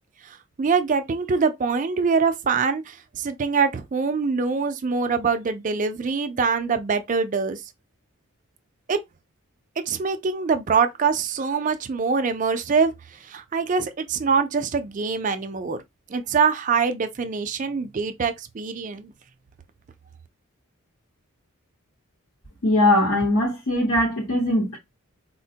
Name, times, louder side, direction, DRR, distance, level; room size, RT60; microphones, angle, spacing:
voice 1, 0.2-7.6 8.9-9.0 9.9-15.8 16.1-19.1, right 5 dB, 35° right, 0.3 m, -24 dB
voice 2, 22.6-24.8, left 1 dB, 65° left, 0.9 m, -20 dB
4.1 x 2.1 x 2.7 m
head